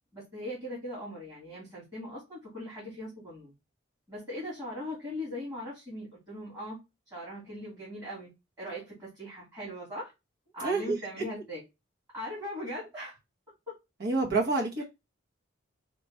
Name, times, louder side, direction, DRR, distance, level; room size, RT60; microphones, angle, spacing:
voice 1, 0.1-3.5 4.1-6.8 7.1-8.3 8.6-10.1 10.5-11.6 12.1-13.2, left 1 dB, 20° right, 2.7 m, -39 dB
voice 2, 10.6-11.0 14.0-14.8, right 3 dB, 55° right, 0.9 m, -27 dB
4.7 x 2.3 x 4.3 m
head